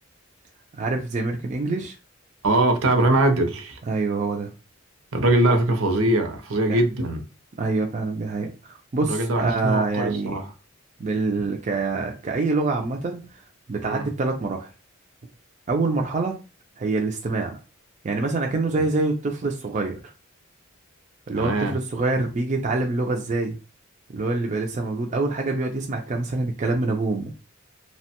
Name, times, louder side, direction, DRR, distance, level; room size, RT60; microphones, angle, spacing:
voice 1, 0.7-1.9 3.9-4.5 6.7-6.8 7.6-10.4 11.0-13.2 13.7-14.7 15.7-16.4 16.8-17.6 18.0-20.0 21.3-23.6 24.1-27.3, right 3 dB, 35° right, 0.3 m, -25 dB
voice 2, 2.4-3.8 5.1-7.2 9.1-10.5 13.8-14.1 21.3-21.7, right 1 dB, 75° right, 0.6 m, -22 dB
2.9 x 2.1 x 2.8 m
head